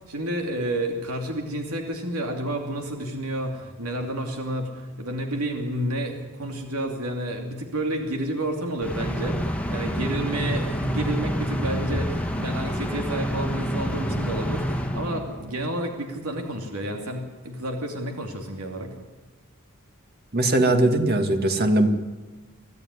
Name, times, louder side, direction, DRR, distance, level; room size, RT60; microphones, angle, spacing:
voice 1, 0.1-18.9, right 1 dB, 80° right, 3 dB, 2.7 m, -30 dB
sound 1, 8.8-15.6, equal, 5° left, 1.5 m, -28 dB
voice 2, 20.3-21.9, right 1 dB, 45° right, 6 dB, 1.9 m, -20 dB
25.0 x 15.0 x 9.7 m, 1.3 s
head